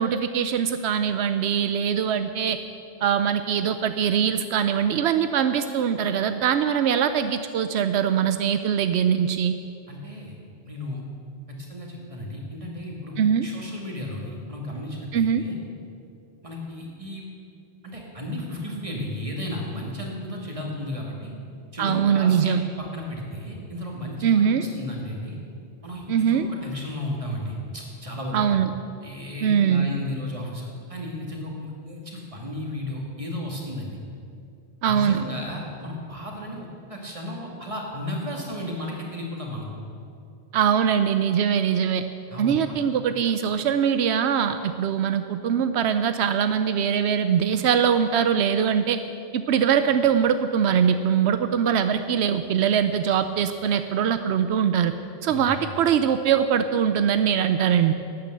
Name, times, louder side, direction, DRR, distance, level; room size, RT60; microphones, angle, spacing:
voice 1, 0.0-2.6 3.0-9.5 13.2-13.5 15.1-15.4 21.8-22.6 24.2-24.6 26.1-26.5 28.3-28.7 29.4-29.9 34.8-35.2 40.5-42.0 42.4-49.0 49.3-54.9 55.2-57.9, right 8 dB, 85° right, 10 dB, 0.9 m, -22 dB
voice 2, 9.9-10.4 10.6-11.0 11.5-15.6 16.4-17.2 17.8-21.3 21.7-25.4 25.8-28.4 29.0-34.0 34.9-39.7 42.3-42.8 55.3-55.6, left 1 dB, 30° right, -1 dB, 2.3 m, -34 dB
12.0 x 9.3 x 7.9 m, 2.5 s
omnidirectional pair, 1.1 m